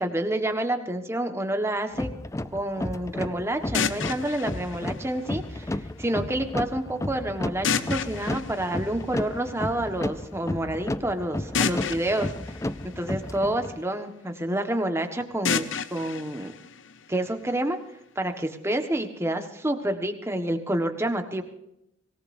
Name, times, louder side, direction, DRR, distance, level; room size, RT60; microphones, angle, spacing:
voice 1, 0.0-2.1 2.5-12.3 13.0-16.5 17.1-17.8 18.1-21.4, right 1 dB, 15° right, 6 dB, 1.4 m, -28 dB
sound 1, 1.9-13.8, left 1 dB, 15° left, 0.4 m, -33 dB
sound 2, 3.7-5.8 7.6-9.6 11.5-13.8 15.4-17.5, left 6 dB, 75° left, 0.8 m, -31 dB
24.5 x 18.5 x 2.7 m, 0.83 s
head